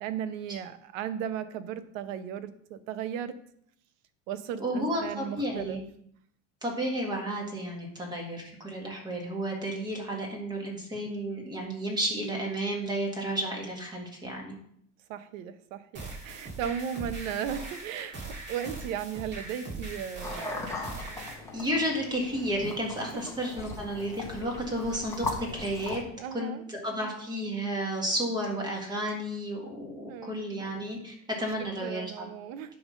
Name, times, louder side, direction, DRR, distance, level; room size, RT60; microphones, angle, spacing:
voice 1, 0.0-3.3 4.3-5.8 15.1-20.7 23.1-23.3 26.2-26.6 30.1-30.4 31.6-32.7, right 9 dB, 75° right, 11 dB, 0.9 m, -36 dB
voice 2, 4.6-5.8 6.6-14.5 21.5-26.0 26.3-32.3, right 1 dB, 10° right, -1 dB, 1.8 m, -32 dB
sound 1, 15.9-21.3, right 2 dB, 25° right, 1.9 m, -41 dB
sound 2, 20.2-26.0, left 3 dB, 5° left, 1.0 m, -39 dB
9.5 x 3.6 x 6.4 m, 0.68 s
cardioid pair, 160°, 40 cm